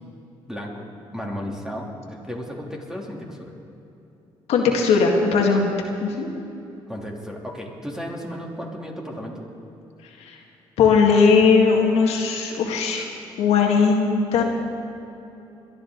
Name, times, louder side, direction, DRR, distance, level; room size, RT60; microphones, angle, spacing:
voice 1, 0.5-0.9 1.1-3.5 6.9-9.5, equal, 5° right, -1 dB, 3.1 m, -34 dB
voice 2, 4.5-5.7 6.0-6.3 10.2-10.4 10.8-13.1 13.4-14.4, left 5 dB, 80° left, 1 dB, 1.8 m, -18 dB
22.0 x 12.5 x 3.9 m, 3.0 s
supercardioid pair, 70°, 11 cm